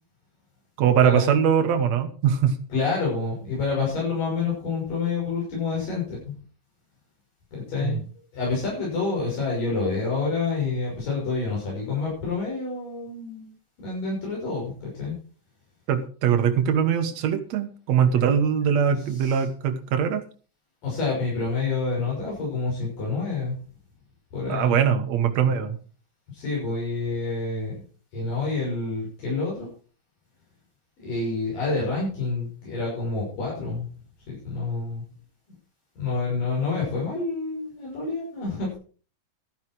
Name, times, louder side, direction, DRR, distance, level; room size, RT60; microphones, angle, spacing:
voice 1, 0.8-2.6 7.8-7.9 15.9-20.2 24.5-25.8, right 8 dB, 60° right, 8 dB, 2.3 m, -22 dB
voice 2, 2.7-6.3 7.5-8.0 8.3-13.5 13.8-15.2 18.9-19.5 20.8-23.6 24.3-24.8 26.3-27.8 28.1-29.7 31.0-33.9 34.3-35.0 36.0-38.8, left 4 dB, 80° left, -5 dB, 8.0 m, -28 dB
13.5 x 10.5 x 4.8 m, 0.40 s
omnidirectional pair, 3.8 m